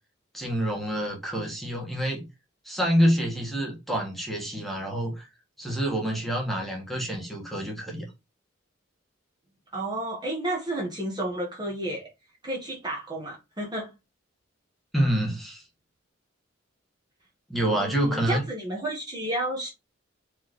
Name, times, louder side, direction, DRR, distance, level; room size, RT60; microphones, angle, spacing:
voice 1, 0.3-2.3 2.6-5.3 5.6-8.1 14.9-15.6 17.5-18.4, equal, ahead, 1.5 m, -27 dB
voice 2, 9.7-12.1 12.4-13.9 17.6-19.7, right 1 dB, 20° right, 1.3 m, -31 dB
4.6 x 3.6 x 3.1 m
head